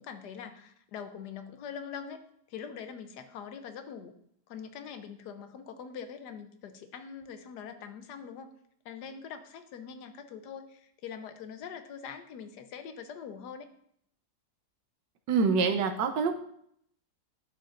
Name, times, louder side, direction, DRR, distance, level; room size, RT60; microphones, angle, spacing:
voice 1, 0.0-2.2 2.5-4.1 4.5-8.5 8.8-13.7, left 7 dB, 75° left, 9 dB, 1.3 m, -43 dB
voice 2, 15.3-16.3, right 5 dB, 85° right, 6 dB, 1.4 m, -25 dB
11.0 x 6.6 x 2.5 m, 0.70 s
omnidirectional pair, 1.9 m